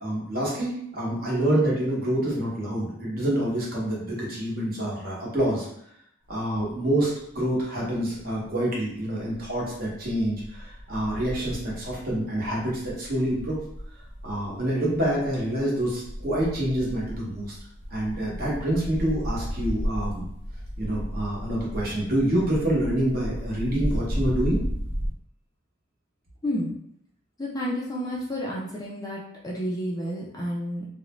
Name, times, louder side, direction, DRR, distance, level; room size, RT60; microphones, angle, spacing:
voice 1, 0.0-5.7 6.3-13.6 14.2-17.5 17.9-20.2 20.8-24.6, right 1 dB, 45° right, -5 dB, 0.9 m, -27 dB
sound 1, 6.3-6.9 7.3-8.6 9.1-25.1, equal, 65° right, 0.6 m, -34 dB
voice 2, 26.4-26.7 27.4-30.9, equal, 20° left, -4 dB, 0.4 m, -30 dB
2.5 x 2.0 x 3.0 m, 0.71 s
head